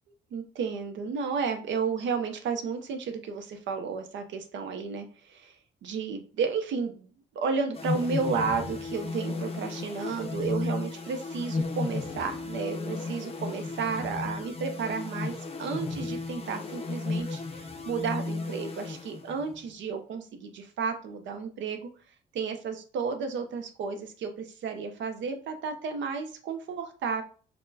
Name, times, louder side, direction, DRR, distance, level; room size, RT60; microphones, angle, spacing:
voice 1, 0.3-5.6 5.8-7.1 7.3-15.3 15.6-21.9 22.3-27.2, right 5 dB, 70° right, 6 dB, 0.5 m, -32 dB
sound 1, 7.7-19.6, left 3 dB, 30° left, 0.5 m, -34 dB
4.3 x 2.1 x 2.6 m, 0.39 s
cardioid pair, 90°, 20 cm